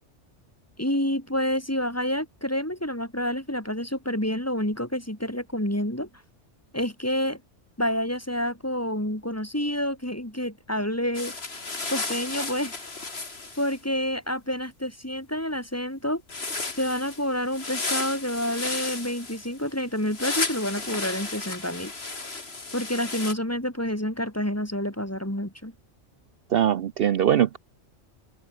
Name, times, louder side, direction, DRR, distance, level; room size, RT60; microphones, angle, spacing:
voice 1, 0.8-6.1 6.7-7.4 7.8-11.4 11.9-12.8 13.6-16.2 16.8-21.9 22.7-25.7, equal, 10° left, 3.5 m, -28 dB
sound 1, 11.1-13.8 16.3-23.3, left 3 dB, 60° left, 3.0 m, -33 dB
voice 2, 26.5-27.6, right 10 dB, 60° right, 0.8 m, -21 dB
omnidirectional pair, 1.2 m